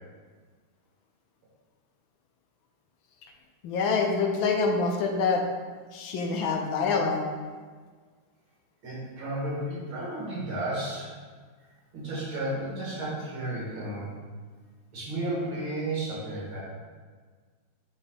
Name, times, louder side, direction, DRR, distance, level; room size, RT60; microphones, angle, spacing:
voice 1, 3.6-5.4 5.9-7.2, left 4 dB, 75° left, 3 dB, 1.4 m, -26 dB
voice 2, 8.8-11.1 11.9-14.1 14.9-16.6, right 1 dB, 70° right, -6 dB, 2.7 m, -33 dB
7.9 x 3.9 x 3.9 m, 1.5 s
omnidirectional pair, 2.3 m